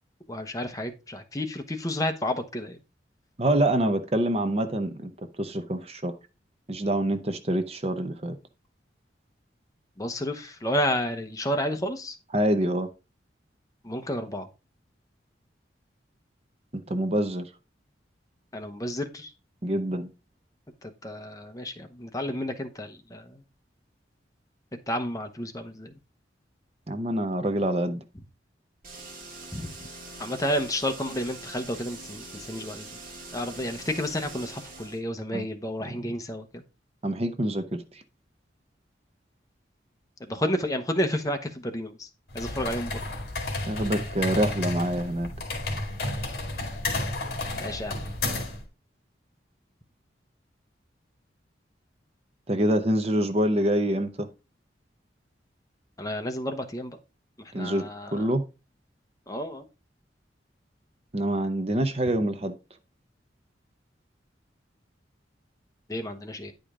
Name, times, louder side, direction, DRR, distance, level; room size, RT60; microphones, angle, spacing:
voice 1, 0.3-2.8 10.0-12.2 13.8-14.5 18.5-19.3 21.0-23.4 24.9-25.9 29.5-29.7 30.2-32.9 33.3-36.6 40.2-42.1 42.3-43.0 47.6-48.0 56.0-57.0 57.4-58.1 59.3-59.6 65.9-66.5, left 1 dB, 20° left, 0.9 m, -31 dB
voice 2, 3.4-6.2 6.7-8.4 12.3-12.9 16.7-17.5 19.6-20.1 26.9-28.0 35.3-35.5 35.8-36.0 37.0-38.0 43.6-45.3 52.5-54.3 57.5-58.4 61.1-62.5, right 1 dB, 35° right, 0.7 m, -26 dB
sound 1, 28.8-35.0, right 2 dB, 50° right, 1.9 m, -43 dB
sound 2, 42.3-48.6, left 2 dB, 55° left, 2.4 m, -32 dB
9.9 x 5.1 x 3.7 m
head